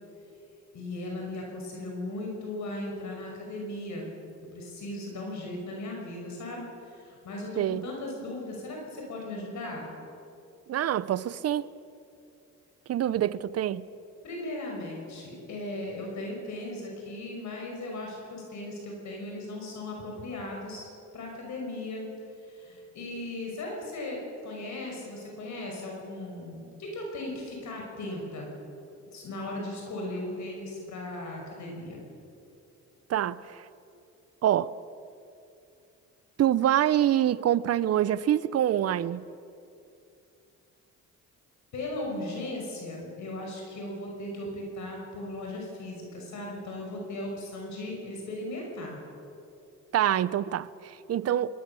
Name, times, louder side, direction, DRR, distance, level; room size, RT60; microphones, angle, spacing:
voice 1, 0.7-4.1 4.5-9.9 14.2-20.9 21.1-22.1 22.4-28.5 29.1-32.0 41.7-49.0, left 1 dB, 70° left, 5.9 m, -37 dB
voice 2, 7.6-7.9 10.7-11.6 12.9-13.9 33.1-33.7 34.4-34.7 36.4-39.3 49.9-51.5, right 11 dB, 55° right, 0.7 m, -26 dB
24.0 x 19.5 x 7.0 m
cardioid pair, 90°, 30 cm